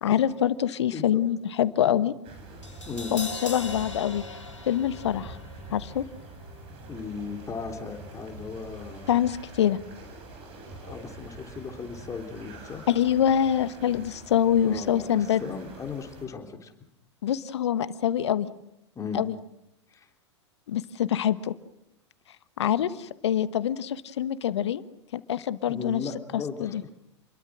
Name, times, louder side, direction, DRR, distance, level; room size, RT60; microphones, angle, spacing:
voice 1, 0.0-2.1 3.1-4.2 4.7-5.4 5.7-6.0 9.1-9.8 12.9-15.4 17.2-18.5 19.1-19.3 20.7-21.5 22.6-22.9 23.2-24.8 25.1-26.0 26.6-26.8, left 10 dB, 70° left, 15 dB, 1.2 m, -25 dB
sound 1, 2.2-16.3, right 2 dB, 40° right, 7.9 m, -45 dB
Crash cymbal, 2.6-8.8 9.1-9.2, left 3 dB, 90° left, 3.7 m, -42 dB
voice 2, 6.9-9.2 10.8-12.8 14.6-16.7 19.0-19.2 19.9-20.1 25.6-26.9, left 5 dB, 20° left, 4 dB, 3.6 m, -37 dB
28.5 x 22.0 x 6.3 m, 0.81 s
figure-of-eight pair, 95°, 15 cm